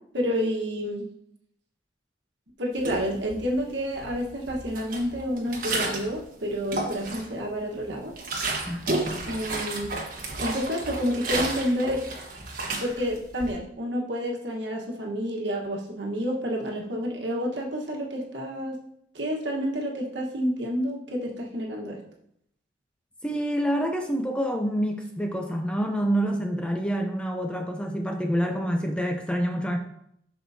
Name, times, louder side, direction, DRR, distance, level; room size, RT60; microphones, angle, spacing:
voice 1, 0.1-1.0 2.6-8.1 9.3-9.9 10.4-12.0 12.7-18.8 19.1-22.0, equal, 70° right, -1 dB, 1.4 m, -29 dB
sound 1, 2.8-3.6 4.0-6.2 6.5-7.4 7.8-13.5, right 2 dB, 45° right, 1.3 m, -32 dB
voice 2, 23.2-29.8, equal, 5° left, 4 dB, 0.5 m, -27 dB
7.6 x 6.1 x 2.8 m, 0.72 s
head